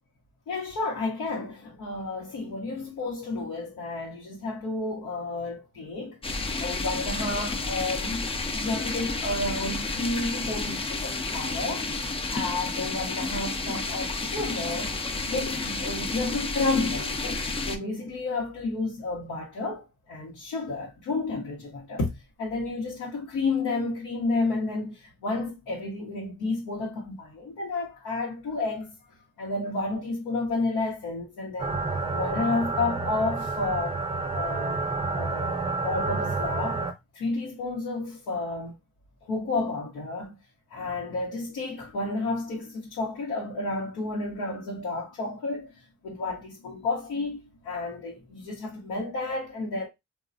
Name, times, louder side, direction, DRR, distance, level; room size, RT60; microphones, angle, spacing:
voice 1, 0.5-6.2 6.6-11.9 12.3-15.0 15.3-34.0 34.3-34.8 35.0-36.8 37.1-38.7 39.2-40.4 40.7-49.9, left 3 dB, 85° left, 1.0 m, -31 dB
sound 1, 6.2-17.8, left 3 dB, 20° left, 0.4 m, -31 dB
sound 2, 31.6-36.9, right 3 dB, 20° right, 0.6 m, -29 dB
3.0 x 2.3 x 2.4 m
cardioid pair, 90°, 30 cm